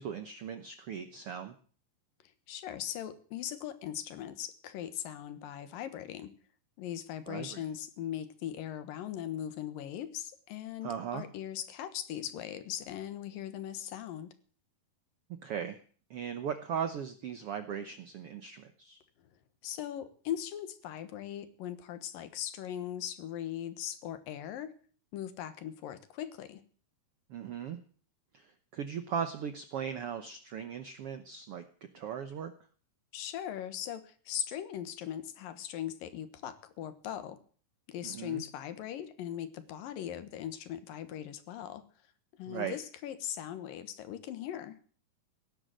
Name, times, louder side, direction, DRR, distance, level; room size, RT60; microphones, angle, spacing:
voice 1, 0.0-1.5 7.3-7.6 10.8-11.2 15.4-15.8 16.1-19.0 27.3-27.8 28.3-31.7 31.9-32.5 38.0-38.4 42.5-42.8, right 8 dB, 70° right, 9 dB, 1.3 m, -38 dB
voice 2, 2.5-6.3 6.8-14.3 19.6-24.7 25.1-26.6 33.1-37.4 37.9-41.8 42.4-44.8, left 11 dB, 75° left, 11 dB, 3.0 m, -39 dB
17.0 x 11.0 x 7.6 m, 0.44 s
omnidirectional pair, 4.1 m